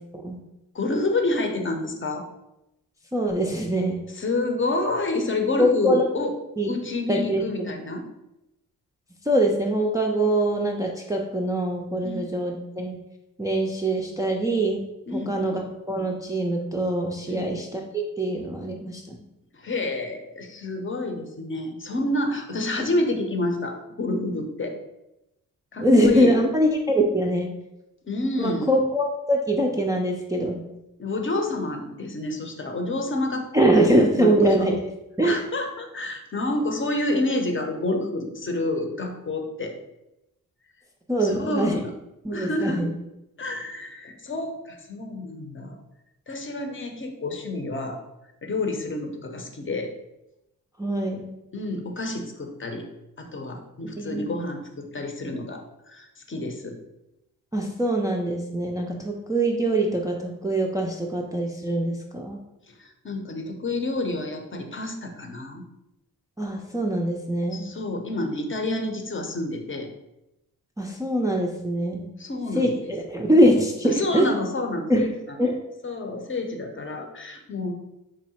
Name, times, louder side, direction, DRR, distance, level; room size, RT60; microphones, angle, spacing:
voice 1, 0.7-2.2 4.1-6.3 6.7-8.0 12.0-12.3 15.1-15.6 17.3-17.5 19.5-24.8 25.7-26.4 28.0-28.7 31.0-33.9 34.1-34.5 35.2-39.7 41.2-41.9 42.3-42.9 43.4-45.8 46.3-48.0 48.4-49.9 51.5-52.9 53.2-56.8 62.7-65.6 67.5-69.9 72.2-72.9 73.8-75.5 75.8-77.7, left 2 dB, 35° left, 3 dB, 0.7 m, -29 dB
voice 2, 3.1-4.0 5.6-6.0 6.6-6.7 7.1-7.4 9.3-13.0 13.4-14.8 15.1-15.6 15.9-17.8 18.2-19.2 25.8-27.5 28.4-30.6 33.5-34.8 35.2-35.4 41.1-41.7 42.2-42.9 50.8-51.3 54.0-54.3 57.5-62.4 66.4-67.7 70.8-72.1 72.6-74.3 74.9-75.1 75.4-75.5, right 1 dB, 10° right, 0 dB, 0.4 m, -23 dB
3.7 x 2.1 x 4.1 m, 0.90 s
cardioid pair, 85°, 35 cm